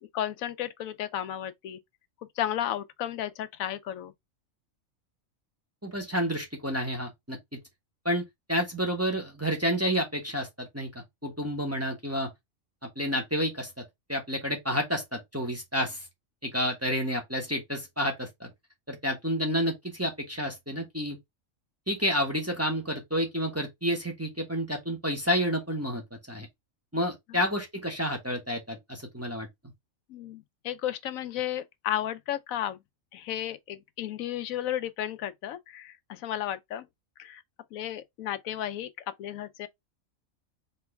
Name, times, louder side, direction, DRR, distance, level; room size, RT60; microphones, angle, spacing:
voice 1, 0.1-1.8 2.4-4.1 30.1-32.8 33.1-36.9 37.2-37.4 37.7-39.7, left 11 dB, 80° left, 1.0 m, -33 dB
voice 2, 5.8-7.6 8.0-8.2 8.5-12.3 13.0-13.8 14.1-16.0 16.4-18.5 18.9-21.2 21.9-26.0 26.3-26.5 26.9-29.5, equal, 10° right, 1.0 m, -30 dB
4.3 x 3.1 x 3.2 m
omnidirectional pair, 1.4 m